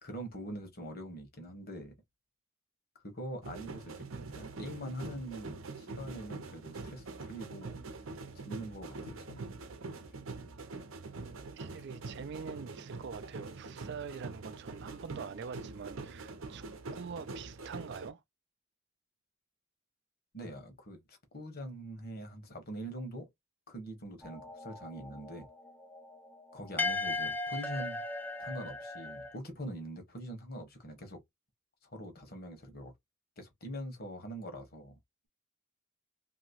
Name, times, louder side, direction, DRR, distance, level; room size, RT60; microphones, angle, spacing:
voice 1, 0.0-1.9 3.0-4.1 4.3-7.7 8.5-9.6 10.0-10.2 20.3-23.3 23.7-25.5 26.5-28.0 28.4-31.2 31.8-32.9 33.4-35.0, right 1 dB, 50° left, 1.2 m, -43 dB
sound 1, 3.4-18.1, right 3 dB, 85° right, 0.7 m, -44 dB
voice 2, 11.5-16.6 16.9-18.2, right 6 dB, 55° right, 0.4 m, -44 dB
sound 2, 24.2-29.3, left 2 dB, 10° left, 0.4 m, -37 dB
2.9 x 2.8 x 2.9 m
head